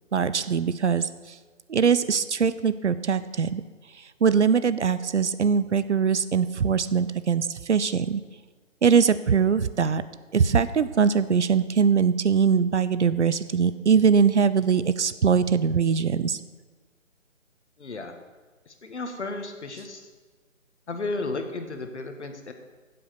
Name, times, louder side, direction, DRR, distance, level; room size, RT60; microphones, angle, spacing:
voice 1, 0.1-1.1 1.7-3.6 4.2-8.2 8.8-10.0 10.3-16.4, right 6 dB, 60° right, 14 dB, 0.6 m, -22 dB
voice 2, 17.8-18.1 18.7-20.1 20.9-22.5, left 3 dB, 60° left, 6 dB, 1.6 m, -33 dB
10.0 x 7.7 x 6.7 m, 1.4 s
figure-of-eight pair, 155°, 39 cm